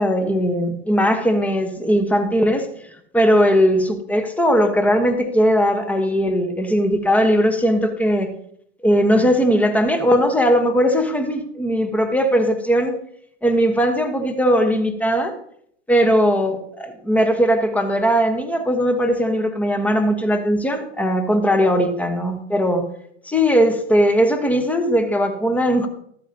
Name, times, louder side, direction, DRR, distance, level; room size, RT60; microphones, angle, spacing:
voice 1, 0.0-2.7 3.1-8.3 8.8-12.9 13.4-15.4 15.9-22.8 23.2-25.9, equal, 5° left, 6 dB, 1.2 m, -19 dB
13.0 x 8.1 x 2.8 m, 0.68 s
hypercardioid pair, 105°, 34 cm